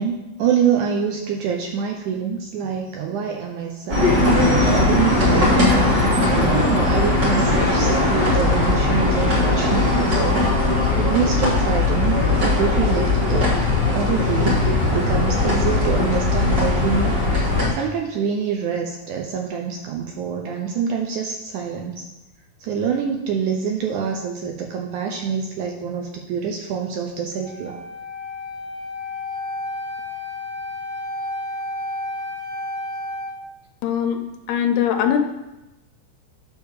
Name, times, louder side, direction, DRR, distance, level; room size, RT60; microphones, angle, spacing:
voice 1, 0.0-5.9 6.4-10.4 11.0-13.5 13.9-17.2 17.7-22.1 22.6-27.8, right 6 dB, 75° right, 1 dB, 1.9 m, -25 dB
sound 1, 3.9-17.7, left 2 dB, 40° right, 2.0 m, -19 dB
Wind instrument woodwind instrument, 27.4-33.4, left 2 dB, 20° right, 1.2 m, -31 dB
voice 2, 33.8-34.2 34.5-35.2, left 9 dB, 75° left, 4 dB, 2.1 m, -21 dB
9.5 x 3.5 x 6.5 m, 0.96 s
omnidirectional pair, 4.1 m